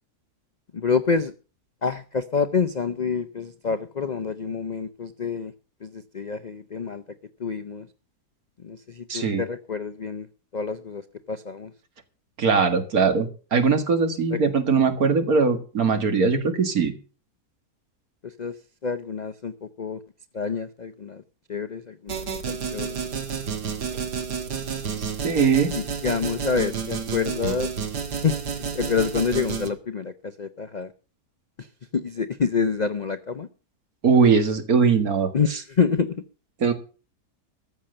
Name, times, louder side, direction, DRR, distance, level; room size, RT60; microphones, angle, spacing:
voice 1, 0.7-1.3 1.8-5.5 5.8-7.0 7.4-7.9 8.6-10.3 10.5-11.0 11.3-11.7 14.3-14.4 18.2-18.5 18.8-20.0 20.3-21.2 21.5-23.0 25.8-27.7 28.2-30.9 31.6-31.7 31.9-33.5 35.3-36.2, left 5 dB, 60° left, 9 dB, 0.4 m, -27 dB
voice 2, 9.1-9.4 12.4-16.9 25.0-25.7 34.0-35.3 36.6-36.7, right 5 dB, 60° right, 7 dB, 2.3 m, -21 dB
sound 1, 22.1-29.7, right 6 dB, 80° right, 2.3 m, -30 dB
14.0 x 8.7 x 6.7 m, 0.37 s
omnidirectional pair, 1.8 m